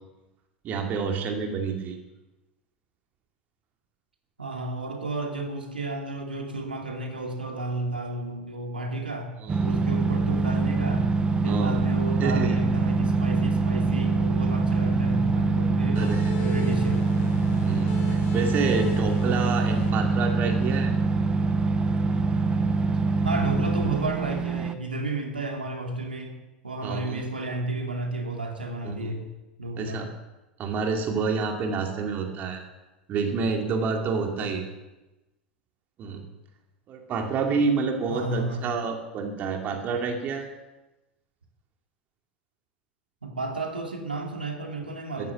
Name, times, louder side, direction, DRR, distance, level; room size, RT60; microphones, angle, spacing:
voice 1, 0.6-2.0 9.4-9.7 11.4-11.8 12.2-12.6 16.0-16.3 17.6-20.9 26.8-27.2 28.8-29.1 29.8-30.1 30.6-32.6 33.1-34.7 36.0-36.2 36.9-40.5 45.2-45.3, right 5 dB, 35° right, 3 dB, 2.4 m, -28 dB
voice 2, 4.4-9.3 9.6-11.1 11.4-17.0 23.2-26.4 26.6-29.3 29.6-30.1 38.1-38.7 43.2-45.3, right 2 dB, 80° right, 2 dB, 2.4 m, -32 dB
sound 1, 9.5-24.7, right 3 dB, 15° right, 1.0 m, -24 dB
sound 2, 16.0-21.2, left 7 dB, 45° left, 1.3 m, -40 dB
14.0 x 11.0 x 6.9 m, 1.0 s
figure-of-eight pair, 85°, 5 cm